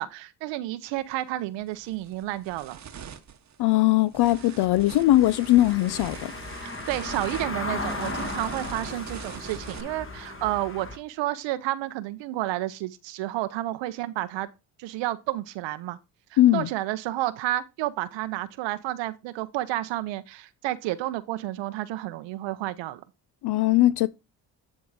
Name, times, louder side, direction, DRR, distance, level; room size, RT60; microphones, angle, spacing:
voice 1, 0.0-2.8 6.6-14.5 14.8-16.0 16.3-23.0, right 15 dB, 75° right, 0.7 m, -31 dB
sound 1, 1.0-1.1 1.6-9.8, right 8 dB, 40° right, 1.0 m, -43 dB
voice 2, 3.6-6.3 16.4-16.7 23.4-24.1, left 15 dB, 60° left, 0.5 m, -20 dB
Car passing by / Engine, 4.2-11.0, left 2 dB, 30° left, 1.6 m, -36 dB
9.5 x 3.6 x 4.7 m
supercardioid pair, 65°, 45 cm